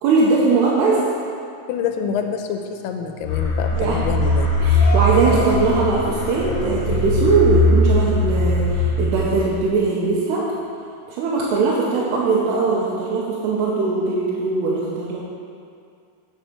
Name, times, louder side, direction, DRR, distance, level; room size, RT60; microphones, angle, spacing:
voice 1, 0.0-1.0 3.8-4.0 4.6-10.5 11.1-15.2, right 4 dB, 90° right, -6 dB, 2.9 m, -20 dB
voice 2, 1.7-4.5, left 7 dB, 85° left, 5 dB, 2.5 m, -26 dB
sound 1, 3.2-9.8, left 1 dB, 60° left, 1.5 m, -20 dB
sound 2, 3.5-8.2, left 2 dB, 40° left, 1.3 m, -34 dB
9.5 x 4.6 x 5.5 m, 2.3 s
omnidirectional pair, 4.7 m